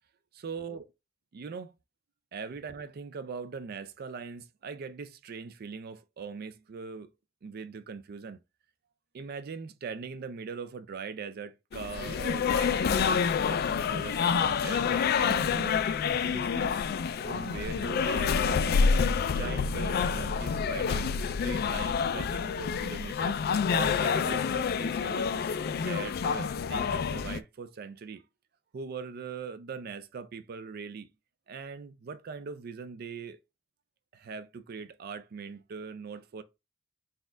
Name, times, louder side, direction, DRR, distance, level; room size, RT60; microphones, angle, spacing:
voice 1, 0.3-0.9 1.3-1.7 2.3-7.1 7.4-8.4 9.1-15.8 16.2-16.7 17.2-19.0 19.3-21.1 21.4-23.4 23.7-25.3 25.8-28.2 28.7-31.1 31.5-33.4 34.1-36.4, right 5 dB, 50° right, 0.4 m, -41 dB
Volleyball Game, 11.7-27.4, left 6 dB, 55° left, 0.3 m, -28 dB
4.1 x 2.4 x 3.8 m
head